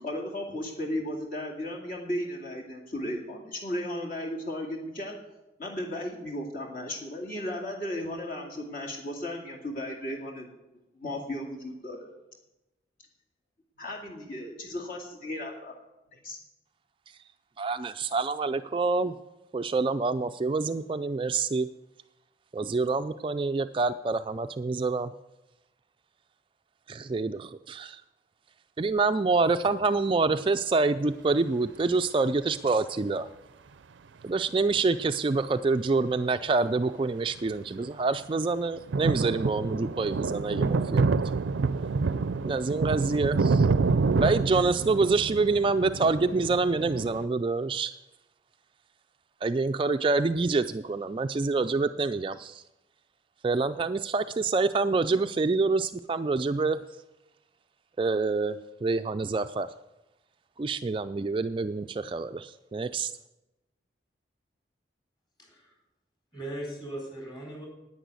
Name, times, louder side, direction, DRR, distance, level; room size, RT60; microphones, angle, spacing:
voice 1, 0.0-5.2 5.6-10.5 10.9-12.1 13.8-15.8 16.1-16.4, left 1 dB, 50° left, 0 dB, 2.3 m, -35 dB
voice 2, 17.6-19.1 19.5-21.7 22.5-25.1 26.9-28.0 28.8-33.3 34.2-41.2 42.4-43.7 44.1-47.9 49.4-52.6 53.4-56.8 58.0-59.7 60.6-63.1, right 3 dB, 30° right, 9 dB, 0.3 m, -27 dB
sound 1, 37.4-37.5 37.8-37.9 38.8-47.2, right 4 dB, 85° right, 0.5 m, -27 dB
voice 3, 65.4-65.7 66.3-67.7, right 1 dB, 25° left, -2 dB, 4.2 m, -38 dB
10.0 x 9.5 x 8.3 m, 0.98 s
head